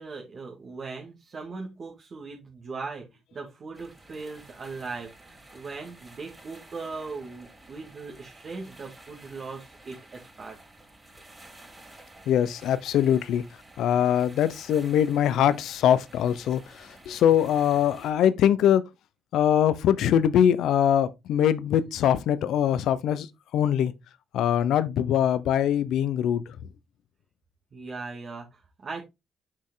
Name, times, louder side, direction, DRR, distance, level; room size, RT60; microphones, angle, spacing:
voice 1, 0.0-10.6 27.7-29.0, right 4 dB, 45° right, 2.2 m, -39 dB
sound 1, 3.7-18.1, right 1 dB, 15° right, 3.7 m, -51 dB
voice 2, 12.3-13.4 13.8-18.8 19.3-23.3 23.5-23.9 24.3-26.6, left 10 dB, 80° left, 0.8 m, -22 dB
6.5 x 6.1 x 3.8 m
cardioid pair, 90°, 0 cm